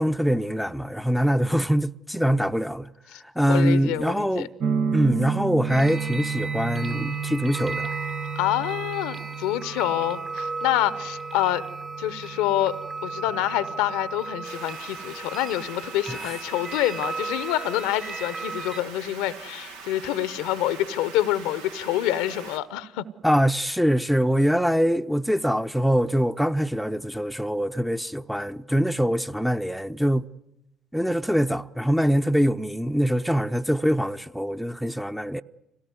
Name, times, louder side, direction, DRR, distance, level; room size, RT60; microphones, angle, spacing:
voice 1, 0.0-2.9 3.3-4.5 4.9-7.9 16.1-16.3 23.2-30.3 30.9-35.4, equal, ahead, 0.8 m, -23 dB
voice 2, 3.5-4.5 8.3-11.6 12.0-12.8 13.0-23.0, left 13 dB, 75° left, 0.8 m, -27 dB
sound 1, 4.6-14.4, right 5 dB, 55° right, 0.9 m, -32 dB
sound 2, 5.7-18.8, right 4 dB, 40° right, 1.8 m, -35 dB
sound 3, 14.4-22.6, right 5 dB, 80° right, 1.6 m, -42 dB
25.5 x 18.0 x 9.5 m
hypercardioid pair, 50°, 0 cm